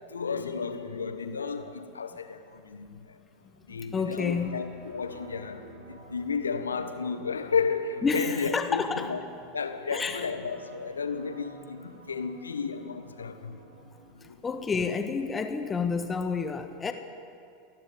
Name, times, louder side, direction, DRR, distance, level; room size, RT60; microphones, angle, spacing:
voice 1, 0.1-3.2 3.7-5.6 5.9-9.2 9.5-13.6 14.2-14.4, left 5 dB, 75° left, 9 dB, 1.4 m, -33 dB
voice 2, 3.7-4.6 8.0-9.1 9.9-10.3 14.4-16.9, left 5 dB, 20° left, 7 dB, 1.7 m, -29 dB
sound 1, 4.1-14.1, right 1 dB, 75° right, 3.4 m, -51 dB
29.0 x 11.5 x 7.7 m, 2.5 s
figure-of-eight pair, 85°, 0 cm